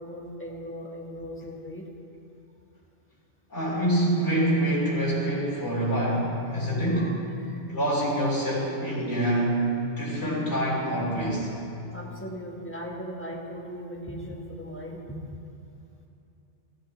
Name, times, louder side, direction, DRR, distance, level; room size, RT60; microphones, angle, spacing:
voice 1, 0.0-1.8 6.5-6.7 6.9-7.1 7.4-7.6 11.9-15.2, equal, 10° left, -2 dB, 1.4 m, -38 dB
voice 2, 3.5-7.2 7.7-11.5, right 1 dB, 80° left, -7 dB, 3.2 m, -26 dB
15.0 x 12.5 x 3.4 m, 2.7 s
omnidirectional pair, 1.2 m